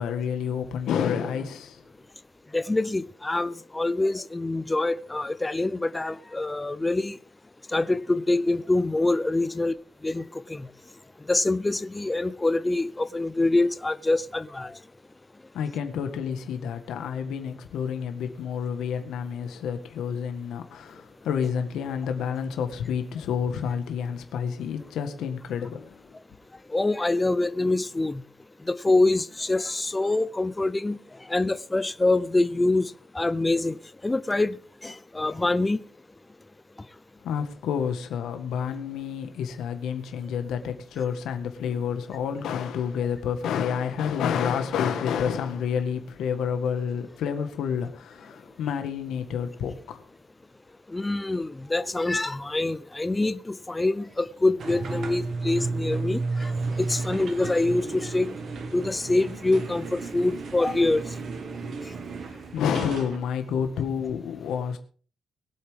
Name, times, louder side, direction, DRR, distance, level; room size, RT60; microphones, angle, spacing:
voice 1, 0.0-1.9 15.5-26.1 37.2-50.0 62.3-64.8, left 7 dB, 80° left, 1.7 m, -29 dB
voice 2, 2.5-7.2 7.7-9.7 10.0-10.7 11.3-14.7 26.7-28.2 28.7-31.0 31.3-33.8 34.0-34.6 34.8-35.8 50.9-56.5 56.8-58.3 58.7-61.0, left 2 dB, 10° left, 0.5 m, -25 dB
sound 1, 54.6-63.2, right 3 dB, 45° right, 1.9 m, -33 dB
22.5 x 8.3 x 3.7 m
cardioid pair, 180°, 0 cm